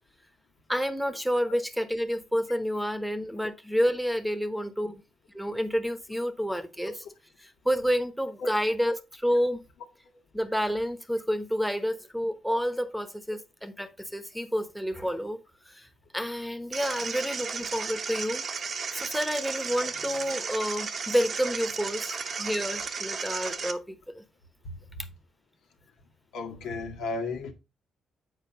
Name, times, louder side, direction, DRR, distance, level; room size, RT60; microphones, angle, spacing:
voice 1, 0.7-5.0 5.3-6.9 7.4-9.6 10.3-15.4 15.7-15.9 16.1-18.4 18.9-24.2, equal, ahead, 1.1 m, -29 dB
sound 1, 16.7-23.7, right 5 dB, 45° right, 0.9 m, -34 dB
voice 2, 26.3-27.5, left 3 dB, 90° left, 1.8 m, -34 dB
7.4 x 4.6 x 4.2 m
cardioid pair, 90°, 0 cm